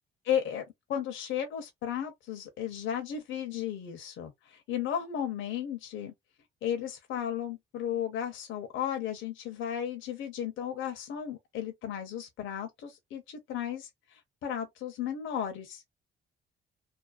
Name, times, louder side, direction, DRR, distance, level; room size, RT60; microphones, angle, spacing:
voice 1, 0.2-0.6 0.9-6.1 6.6-13.9 14.4-15.8, left 9 dB, 80° left, 0.6 m, -34 dB
2.4 x 2.2 x 2.4 m
cardioid pair, 90°, 20 cm